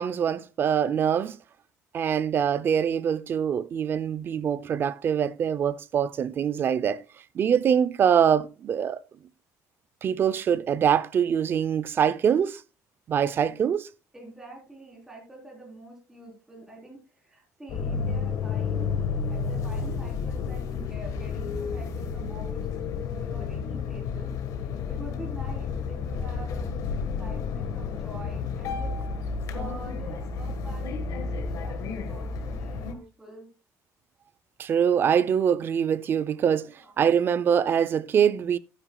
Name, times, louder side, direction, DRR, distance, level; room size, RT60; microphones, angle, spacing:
voice 1, 0.0-1.4 1.9-7.0 7.3-9.0 10.0-12.6 13.1-13.9 34.6-38.6, right 8 dB, 35° right, 0.5 m, -24 dB
voice 2, 14.1-24.3 24.9-29.0 29.5-33.5 36.3-36.9, right 1 dB, 5° right, 3.9 m, -46 dB
sound 1, 17.7-32.9, left 5 dB, 65° left, 1.5 m, -31 dB
12.0 x 9.8 x 2.3 m
cardioid pair, 160°, 6 cm